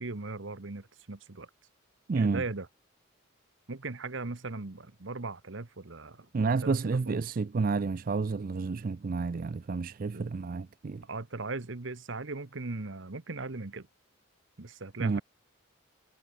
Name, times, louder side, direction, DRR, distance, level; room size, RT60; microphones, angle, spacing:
voice 1, 0.0-1.5 2.1-2.7 3.7-7.2 10.1-10.3 11.0-13.9 14.6-15.2, right 3 dB, 60° right, 1.1 m, -38 dB
voice 2, 2.1-2.4 6.3-11.0 15.0-15.2, right 4 dB, 40° right, 0.4 m, -30 dB
head